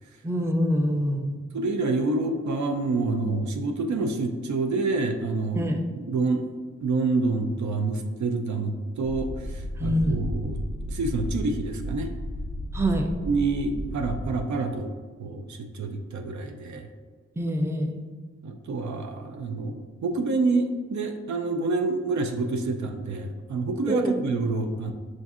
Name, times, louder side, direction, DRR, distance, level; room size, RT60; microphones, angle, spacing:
voice 1, 0.2-1.4 5.6-5.8 9.8-10.2 12.7-13.1 17.4-18.1 23.9-24.1, equal, 10° right, 4 dB, 0.5 m, -25 dB
voice 2, 1.5-5.6 5.9-6.4 6.8-10.6 10.9-12.1 13.2-14.9 15.2-16.9 18.4-24.9, right 3 dB, 75° right, 5 dB, 0.5 m, -27 dB
sound 1, 9.0-14.4, equal, 90° left, 0.5 m, -33 dB
6.1 x 2.5 x 2.4 m, 1.4 s
cardioid pair, 55°, 29 cm